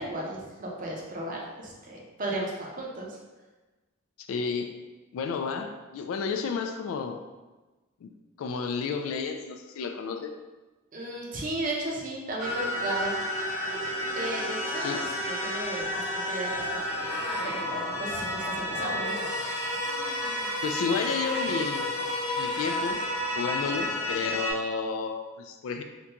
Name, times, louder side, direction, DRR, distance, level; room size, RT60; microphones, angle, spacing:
voice 1, 0.0-3.2 10.9-13.1 14.1-17.1 17.4-19.2, right 1 dB, 40° right, -2 dB, 0.6 m, -35 dB
voice 2, 4.2-4.7 5.1-7.2 8.0-8.1 8.4-10.3 14.8-15.1 20.6-21.9 22.4-23.0 23.4-25.8, left 5 dB, 85° left, 7 dB, 0.3 m, -31 dB
sound 1, 12.4-24.5, left 1 dB, 35° left, 1.1 m, -31 dB
3.8 x 2.2 x 2.8 m, 1.2 s
head